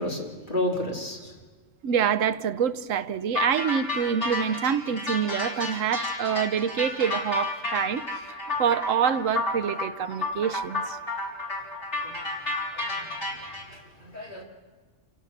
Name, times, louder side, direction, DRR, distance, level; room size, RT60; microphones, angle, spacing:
voice 1, 0.0-1.3 12.0-12.1 12.7-13.3 13.7-14.4, left 1 dB, 40° left, 3.5 m, -32 dB
voice 2, 1.8-8.0 8.6-11.0, right 8 dB, 90° right, 1.2 m, -26 dB
sound 1, 3.3-13.6, left 2 dB, 65° left, 4.5 m, -31 dB
28.0 x 16.5 x 6.6 m
omnidirectional pair, 1.3 m